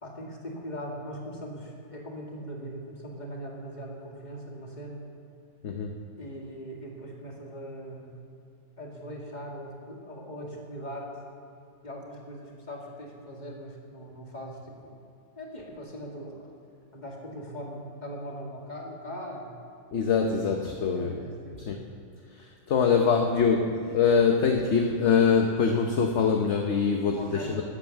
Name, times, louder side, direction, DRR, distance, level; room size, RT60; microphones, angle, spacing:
voice 1, 0.0-5.1 6.2-8.2 8.8-11.1 11.8-15.0 15.4-16.5 16.9-19.7 20.9-21.9 22.9-23.0 27.2-27.6, equal, 25° left, -2 dB, 2.2 m, -40 dB
voice 2, 5.6-6.0 19.9-21.1 21.7-21.8 22.4-27.6, left 5 dB, 50° left, 3 dB, 1.0 m, -24 dB
13.5 x 9.0 x 7.1 m, 2.6 s
omnidirectional pair, 1.7 m